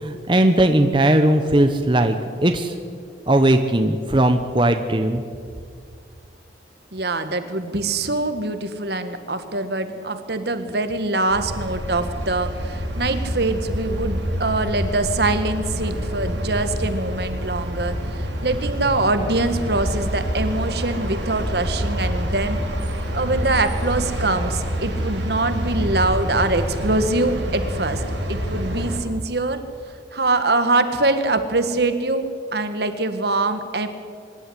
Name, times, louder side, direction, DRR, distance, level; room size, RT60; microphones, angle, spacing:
voice 1, 0.0-2.1 2.4-2.7 3.3-5.2, right 1 dB, 25° right, 6 dB, 0.9 m, -18 dB
voice 2, 6.9-22.6 23.1-28.0 28.3-29.6 30.1-33.9, right 2 dB, 60° right, 9 dB, 1.6 m, -23 dB
sound 1, 11.3-29.0, equal, 80° right, 5.3 m, -27 dB
24.5 x 11.5 x 9.9 m, 2.2 s
head